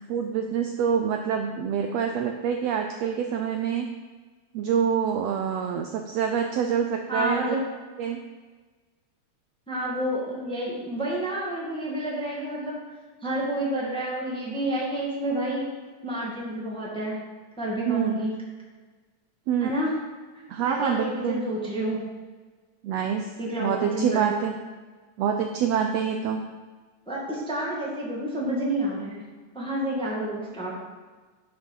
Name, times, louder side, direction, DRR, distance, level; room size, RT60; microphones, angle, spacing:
voice 1, 0.1-3.9 4.5-7.6 8.0-8.2 17.9-18.2 19.5-19.7 20.5-21.4 22.8-23.3 23.6-24.5 25.2-26.4, right 7 dB, 85° right, 4 dB, 1.4 m, -26 dB
voice 2, 7.1-7.6 9.7-12.8 13.2-15.7 16.0-17.2 17.6-18.3 19.6-19.9 20.6-22.0 23.4-24.4 27.1-29.2 29.5-30.8, right 1 dB, ahead, -5 dB, 1.4 m, -29 dB
9.0 x 5.9 x 5.7 m, 1.4 s
omnidirectional pair, 3.6 m